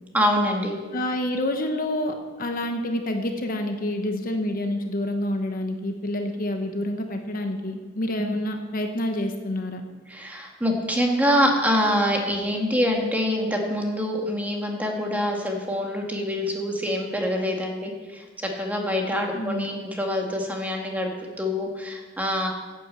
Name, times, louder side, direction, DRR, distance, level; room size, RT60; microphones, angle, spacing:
voice 1, 0.1-0.8 8.2-8.3 10.1-21.1 21.4-22.5, equal, 10° right, 1 dB, 1.7 m, -25 dB
voice 2, 0.9-9.8 19.3-19.8, left 1 dB, 45° left, 4 dB, 1.0 m, -28 dB
11.0 x 8.5 x 7.7 m, 1.4 s
head